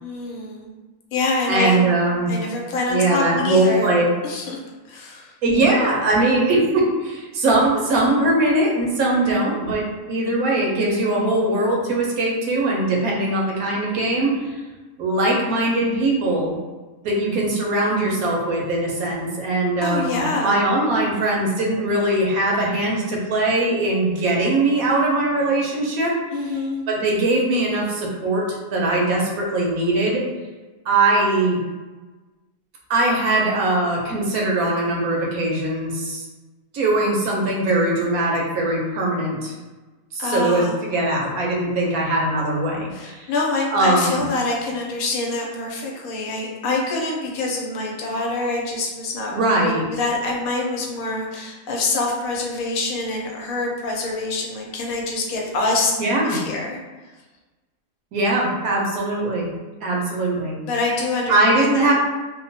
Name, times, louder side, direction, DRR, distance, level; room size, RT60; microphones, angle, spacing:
voice 1, 0.0-0.7 1.1-1.8 2.3-3.9 4.2-4.6 4.9-5.3 19.8-20.6 26.3-26.8 40.2-40.8 42.9-55.9 56.2-56.8 60.6-61.9, left 2 dB, 85° left, -1 dB, 1.1 m, -25 dB
voice 2, 1.5-2.3 2.9-4.0 5.4-14.6 15.0-16.5 17.0-26.1 26.5-26.6 26.9-30.2 30.8-31.6 32.9-36.3 36.7-39.5 40.1-43.3 43.7-44.3 49.3-49.9 56.0-56.4 58.1-59.5 59.8-60.6 61.3-61.9, right 2 dB, 85° right, -2 dB, 1.1 m, -21 dB
2.9 x 2.1 x 2.7 m, 1.2 s
omnidirectional pair, 1.5 m